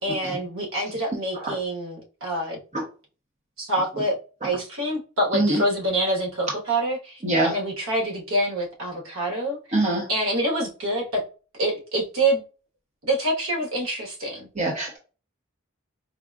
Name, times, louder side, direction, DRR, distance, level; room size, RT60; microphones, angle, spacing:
voice 1, 0.0-2.6 3.6-4.2 4.4-9.6 10.1-11.2 11.6-12.4 13.0-14.5, right 1 dB, 80° right, 1.3 m, -26 dB
voice 2, 7.2-7.5 9.7-10.1 14.6-15.0, right 2 dB, 35° right, 0.9 m, -23 dB
4.7 x 2.5 x 2.3 m
head